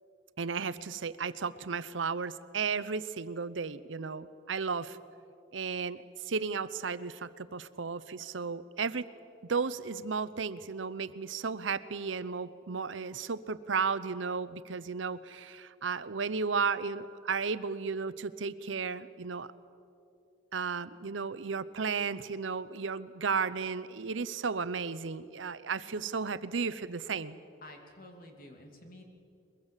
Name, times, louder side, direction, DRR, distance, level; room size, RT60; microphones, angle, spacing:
voice 1, 0.4-5.0 5.5-9.1 9.4-19.5 20.5-27.4, right 5 dB, 90° right, 15 dB, 0.8 m, -34 dB
voice 2, 27.6-29.0, left 1 dB, 45° left, 3 dB, 2.8 m, -50 dB
22.5 x 22.0 x 7.3 m, 2.7 s
head